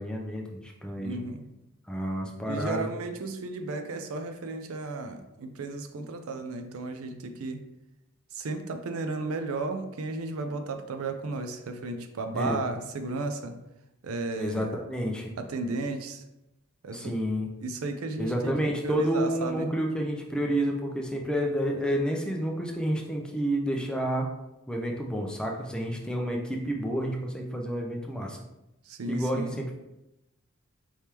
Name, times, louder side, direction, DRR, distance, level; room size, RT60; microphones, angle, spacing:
voice 1, 0.0-1.2 1.9-2.9 12.3-12.6 14.4-15.3 16.9-17.5 18.2-24.3 24.7-28.4 29.1-29.7, equal, 5° left, 1 dB, 0.4 m, -30 dB
voice 2, 1.0-1.4 2.5-7.6 8.3-13.5 14.0-14.7 15.4-16.2 16.8-17.1 17.6-18.5 18.8-19.7 28.9-29.5, right 3 dB, 75° right, 7 dB, 0.5 m, -34 dB
4.6 x 3.5 x 2.9 m, 0.92 s
head